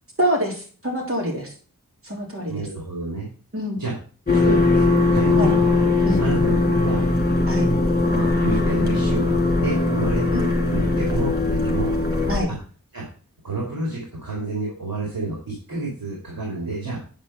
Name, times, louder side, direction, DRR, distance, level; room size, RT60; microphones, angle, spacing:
voice 1, 0.2-1.5 2.0-2.7 3.5-3.8 5.4-5.5 6.1-6.2 7.5-7.7 10.3-10.5 12.3-12.5, equal, 40° right, -1 dB, 3.4 m, -25 dB
voice 2, 2.5-3.3 3.8-3.9 4.3-5.6 6.2-7.1 8.1-10.2 10.7-11.9 12.9-13.0 13.4-17.0, right 2 dB, 80° right, -2 dB, 2.6 m, -29 dB
sound 1, 4.3-12.4, left 2 dB, 25° left, 3.1 m, -20 dB
9.0 x 5.4 x 5.5 m, 0.40 s
wide cardioid pair, 75°, 35 cm